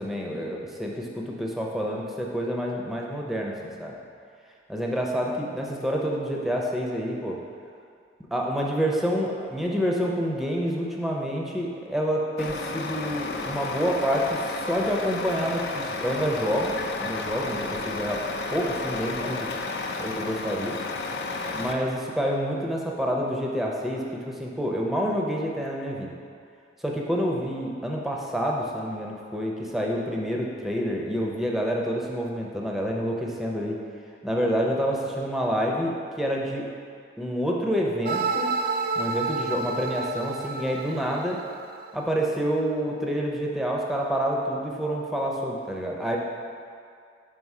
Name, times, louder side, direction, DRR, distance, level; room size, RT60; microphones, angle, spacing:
voice 1, 0.0-3.9 4.7-7.4 8.3-18.2 18.5-19.5 20.0-20.7 21.5-26.1 26.8-33.8 34.2-36.7 37.2-38.5 39.0-41.4 41.9-46.2, equal, ahead, -2 dB, 0.6 m, -28 dB
Truck, 12.4-21.7, left 3 dB, 65° left, 0.4 m, -32 dB
sound 1, 38.1-42.1, right 4 dB, 55° right, 0.3 m, -30 dB
5.4 x 3.8 x 4.8 m, 2.3 s
head